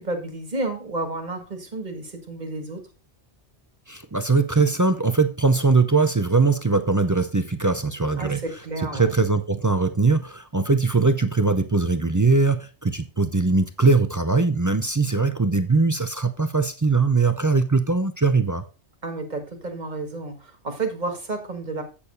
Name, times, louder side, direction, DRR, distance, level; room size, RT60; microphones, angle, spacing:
voice 1, 0.0-2.8 8.2-9.1 19.0-21.8, right 2 dB, 40° right, 1.8 m, -31 dB
voice 2, 3.9-8.4 8.9-18.6, right 3 dB, 25° right, 0.4 m, -21 dB
8.7 x 6.6 x 4.1 m
omnidirectional pair, 1.1 m